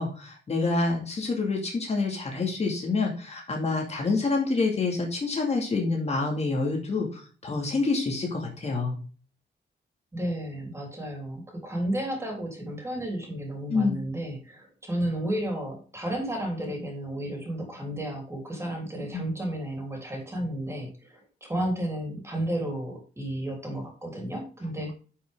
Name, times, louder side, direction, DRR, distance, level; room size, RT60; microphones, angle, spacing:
voice 1, 0.0-9.0 13.7-14.0 19.1-19.2, left 3 dB, 35° left, 0 dB, 2.3 m, -27 dB
voice 2, 10.1-24.9, right 1 dB, 15° right, 1 dB, 3.6 m, -32 dB
11.0 x 5.8 x 3.7 m, 0.37 s
wide cardioid pair, 150°, 18 cm